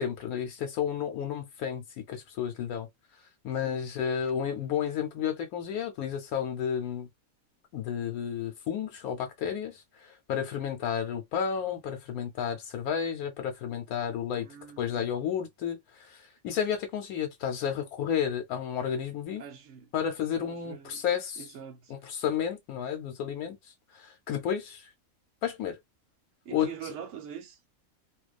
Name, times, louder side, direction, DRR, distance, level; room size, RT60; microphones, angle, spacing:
voice 1, 0.0-2.9 3.4-7.1 7.7-14.5 14.8-19.4 19.9-21.4 21.9-23.6 23.9-24.9 25.4-25.8 26.5-26.7, left 8 dB, 85° left, 1.1 m, -32 dB
voice 2, 14.3-15.1 19.4-19.9 20.4-21.0 21.4-21.9 26.4-27.6, right 8 dB, 60° right, 1.0 m, -44 dB
2.4 x 2.3 x 2.3 m
omnidirectional pair, 1.5 m